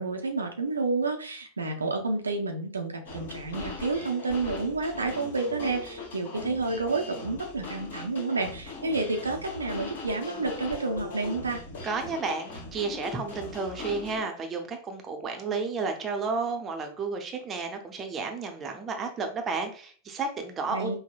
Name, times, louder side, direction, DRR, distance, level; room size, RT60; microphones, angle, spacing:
voice 1, 0.0-11.6 20.7-21.0, right 3 dB, 75° right, 3 dB, 0.5 m, -30 dB
sound 1, 3.0-14.2, left 3 dB, 55° left, 1.4 m, -40 dB
voice 2, 11.8-21.0, right 4 dB, 25° right, 3 dB, 0.6 m, -32 dB
5.3 x 2.1 x 2.4 m, 0.42 s
figure-of-eight pair, 90°, 0 cm